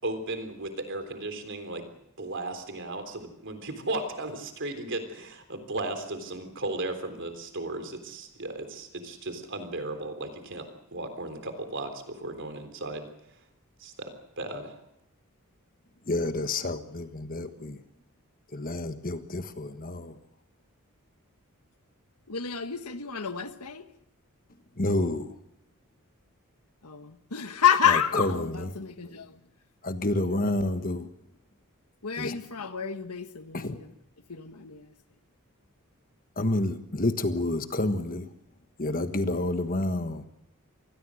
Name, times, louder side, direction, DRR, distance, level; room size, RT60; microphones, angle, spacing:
voice 1, 0.0-1.8 2.2-13.1 13.8-14.8, right 2 dB, 55° right, 3.6 m, -35 dB
voice 2, 16.0-17.8 18.5-20.2 24.8-25.3 27.9-28.7 29.8-31.1 32.2-32.4 33.5-33.8 36.4-38.3 38.8-40.2, left 2 dB, 40° left, 1.4 m, -29 dB
voice 3, 22.3-23.9 26.8-29.4 32.0-33.9 34.3-34.9, left 8 dB, 90° left, 1.5 m, -29 dB
27.0 x 20.0 x 6.4 m
head